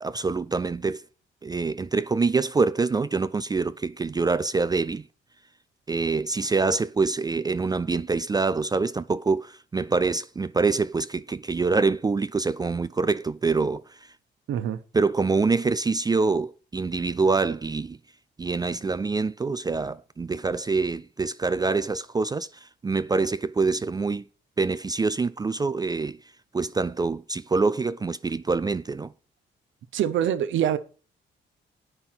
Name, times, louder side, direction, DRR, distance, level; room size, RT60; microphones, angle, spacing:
voice 1, 0.0-1.0 1.4-5.1 5.9-14.1 14.9-18.0 18.4-24.2 24.6-26.2 26.5-29.1, right 4 dB, 20° right, 0.4 m, -25 dB
voice 2, 14.5-14.8 29.9-30.8, right 10 dB, 75° right, 1.0 m, -24 dB
9.7 x 5.5 x 5.9 m
cardioid pair, 90°, 20 cm